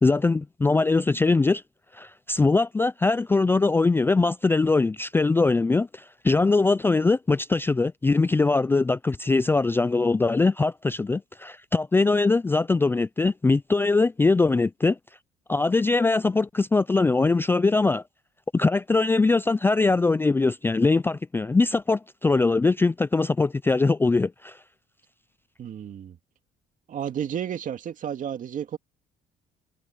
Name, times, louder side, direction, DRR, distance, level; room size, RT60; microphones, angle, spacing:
voice 1, 0.0-1.6 1.9-15.0 15.5-18.0 18.5-24.6, left 3 dB, 15° left, 0.4 m, -22 dB
voice 2, 25.6-26.2 26.9-28.8, right 9 dB, 50° right, 2.3 m, -32 dB
cardioid pair, 110°, 17 cm